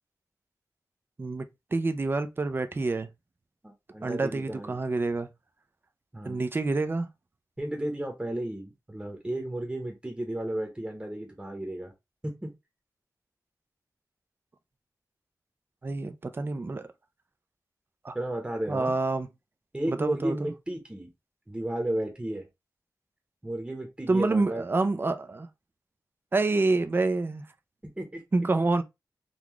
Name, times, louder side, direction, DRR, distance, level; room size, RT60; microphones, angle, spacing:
voice 1, 1.2-3.1 4.0-5.3 6.2-7.1 15.8-16.9 18.0-18.1 18.7-19.3 19.9-20.5 24.1-25.5 26.3-27.4 28.3-28.8, right 3 dB, 30° right, 0.4 m, -27 dB
voice 2, 3.6-4.8 6.1-6.4 7.6-11.9 12.2-12.5 18.1-19.0 19.7-21.1 21.5-22.5 23.4-24.6 27.8-28.2, right 1 dB, 15° right, 0.9 m, -33 dB
3.8 x 2.4 x 2.9 m
wide cardioid pair, 80°, 7 cm